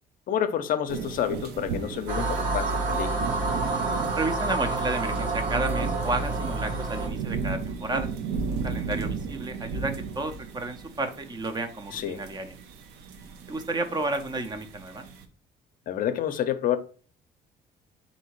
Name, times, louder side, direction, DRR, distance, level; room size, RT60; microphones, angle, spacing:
voice 1, 0.3-3.1 11.9-12.2 15.9-16.8, left 9 dB, 55° left, 0.5 m, -28 dB
sound 1, 0.9-15.2, right 5 dB, 85° right, 0.6 m, -36 dB
sound 2, 2.1-7.1, right 3 dB, 55° right, 1.1 m, -28 dB
voice 2, 4.1-8.1 8.5-12.5 13.5-15.1, right 2 dB, 25° right, 0.5 m, -32 dB
3.7 x 2.7 x 4.4 m
cardioid pair, 110°, 17 cm